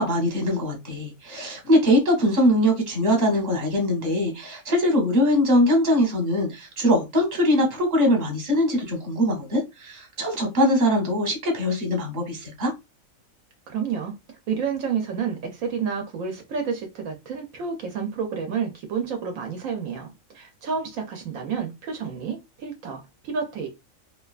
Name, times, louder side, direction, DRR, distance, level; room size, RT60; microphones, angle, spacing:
voice 1, 0.0-12.7, equal, 35° right, 1.0 m, -22 dB
voice 2, 13.7-14.2 14.5-23.7, right 6 dB, 75° right, 1.0 m, -30 dB
2.8 x 2.2 x 2.3 m
omnidirectional pair, 1.4 m